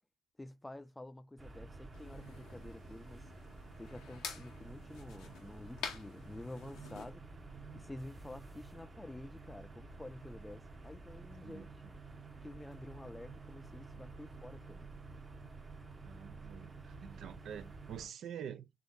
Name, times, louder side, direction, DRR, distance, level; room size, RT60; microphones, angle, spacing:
voice 1, 0.4-3.3 3.8-7.2 7.7-12.0 12.4-14.9, left 1 dB, 15° left, 0.5 m, -50 dB
sound 1, 1.4-18.1, right 3 dB, 30° right, 0.8 m, -51 dB
sound 2, 1.9-7.1, left 6 dB, 75° left, 0.8 m, -49 dB
voice 2, 16.0-18.7, right 9 dB, 65° right, 0.4 m, -47 dB
3.6 x 3.3 x 2.5 m
hypercardioid pair, 50°, 0 cm